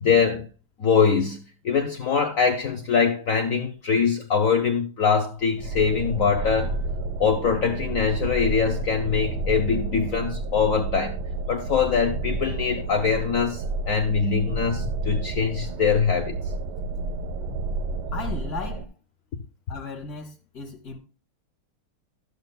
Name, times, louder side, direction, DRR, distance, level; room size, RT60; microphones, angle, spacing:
voice 1, 0.0-0.5 0.8-1.4 1.6-6.8 7.2-11.2 11.5-16.4, left 6 dB, 70° left, 0.7 m, -23 dB
sound 1, 5.6-18.9, right 3 dB, 85° right, 1.6 m, -30 dB
voice 2, 18.1-18.9 19.7-21.0, left 5 dB, 55° left, 1.2 m, -36 dB
13.0 x 6.7 x 2.2 m
omnidirectional pair, 2.3 m